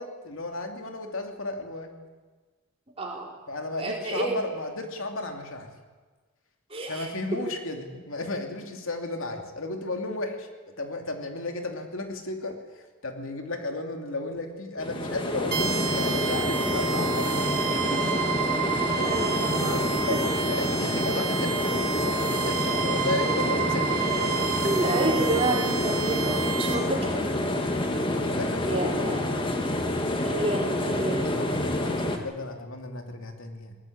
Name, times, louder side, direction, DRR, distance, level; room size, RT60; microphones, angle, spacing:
voice 1, 0.0-1.9 3.5-5.7 6.9-18.0 19.0-19.2 19.7-24.7 28.1-29.5 31.3-33.8, left 2 dB, 70° left, 4 dB, 2.9 m, -34 dB
voice 2, 3.0-3.3 3.8-4.4 6.7-7.0 19.0-19.8 20.1-20.2 24.6-27.1 28.7-29.2 30.2-31.2, right 1 dB, 25° right, -1 dB, 4.5 m, -29 dB
sound 1, 14.8-32.2, left 1 dB, 25° left, 1.9 m, -28 dB
sound 2, 15.5-26.7, right 8 dB, 45° right, 2.4 m, -30 dB
20.0 x 19.5 x 8.7 m, 1.4 s
head